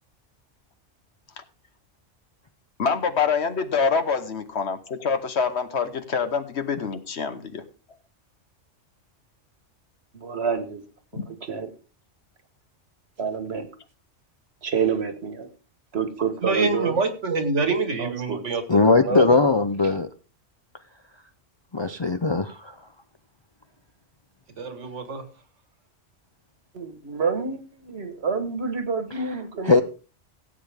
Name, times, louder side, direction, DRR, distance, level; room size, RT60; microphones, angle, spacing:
voice 1, 2.8-7.6 11.1-11.2, left 5 dB, 65° left, 9 dB, 1.3 m, -25 dB
voice 2, 10.1-10.8 11.5-11.7 13.2-13.7 14.6-15.5 15.9-17.0 18.0-18.5 26.7-29.8, right 5 dB, 60° right, 9 dB, 1.6 m, -28 dB
voice 3, 16.4-19.4 24.6-25.2, right 3 dB, 75° right, 8 dB, 1.8 m, -26 dB
voice 4, 18.7-20.1 21.7-22.7 29.7-29.8, left 3 dB, 35° left, 8 dB, 0.4 m, -19 dB
16.5 x 8.1 x 3.5 m, 0.35 s
omnidirectional pair, 1.2 m